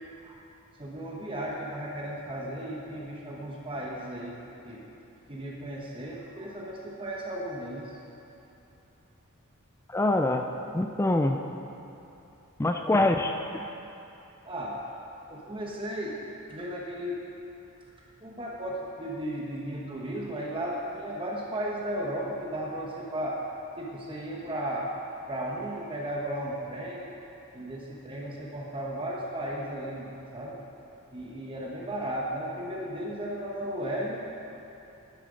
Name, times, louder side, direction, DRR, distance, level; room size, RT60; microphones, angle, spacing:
voice 1, 0.8-4.3 4.6-4.9 5.3-7.9 14.4-14.8 15.3-17.3 18.2-23.4 23.8-24.9 25.3-27.1 27.5-30.6 31.1-34.2, right 1 dB, 25° right, -3 dB, 1.1 m, -35 dB
voice 2, 9.9-11.4 12.6-13.7, left 2 dB, 10° left, 5 dB, 0.4 m, -25 dB
11.0 x 10.5 x 5.1 m, 2.9 s
head